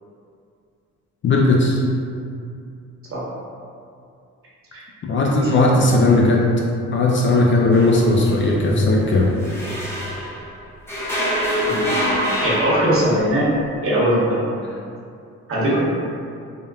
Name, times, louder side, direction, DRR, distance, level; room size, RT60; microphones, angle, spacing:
voice 1, 1.2-1.8 5.0-6.5 6.9-9.3, left 2 dB, 40° left, -2 dB, 0.4 m, -17 dB
sound 1, 7.7-10.5 10.9-13.4, equal, 10° left, 0.7 m, -25 dB
voice 2, 11.6-13.4 13.8-14.5 15.5-15.8, right 1 dB, 45° right, -7 dB, 1.0 m, -21 dB
3.5 x 2.1 x 2.3 m, 2.4 s
cardioid pair, 90°, 30 cm